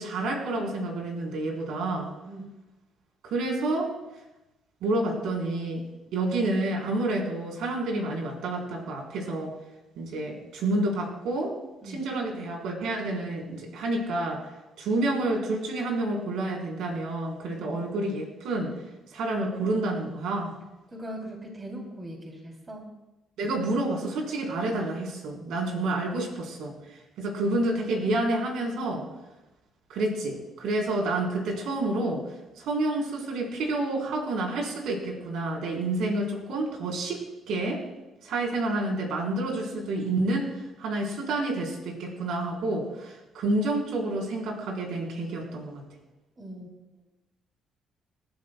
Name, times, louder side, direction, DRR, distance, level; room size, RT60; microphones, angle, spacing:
voice 1, 0.0-2.1 3.2-3.9 4.8-5.8 6.1-9.5 10.0-11.6 11.8-14.5 14.8-18.7 19.1-20.5 23.4-26.7 27.2-29.1 29.9-37.8 38.2-45.8, right 2 dB, 85° right, -1 dB, 4.0 m, -29 dB
voice 2, 20.9-22.9 46.4-46.7, right 1 dB, 25° right, 0 dB, 3.0 m, -40 dB
28.5 x 11.5 x 2.3 m, 1.0 s
cardioid pair, 125°, 0 cm